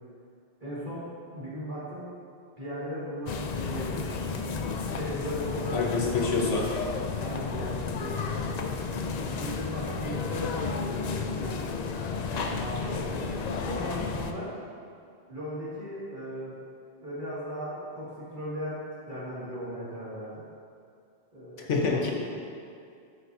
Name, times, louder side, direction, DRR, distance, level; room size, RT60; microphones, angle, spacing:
voice 1, 0.6-1.1 1.3-2.1 2.6-4.3 4.8-6.0 7.2-8.7 9.2-11.5 12.3-13.4 13.6-14.6 15.3-16.6 17.0-18.8 19.1-20.4 21.3-22.1, equal, 45° right, -9 dB, 2.4 m, -37 dB
sound 1, 3.3-14.3, left 5 dB, 60° left, 0.4 m, -32 dB
voice 2, 5.7-6.7 21.6-22.1, left 4 dB, 90° left, 0 dB, 1.4 m, -26 dB
8.9 x 8.5 x 2.7 m, 2.4 s
omnidirectional pair, 1.2 m